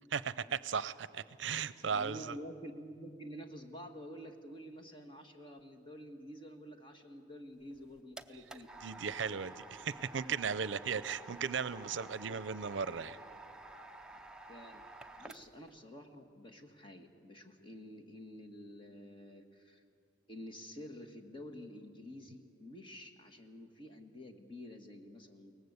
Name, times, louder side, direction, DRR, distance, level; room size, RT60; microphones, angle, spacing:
voice 1, 0.1-2.4 8.8-13.2, right 6 dB, 75° right, 17 dB, 0.6 m, -36 dB
voice 2, 1.9-8.7 12.3-12.4 14.5-19.8 20.3-25.5, equal, 25° left, 5 dB, 1.6 m, -49 dB
sound 1, 7.6-15.7, right 2 dB, 5° right, 0.6 m, -51 dB
22.5 x 19.0 x 8.1 m, 2.4 s
head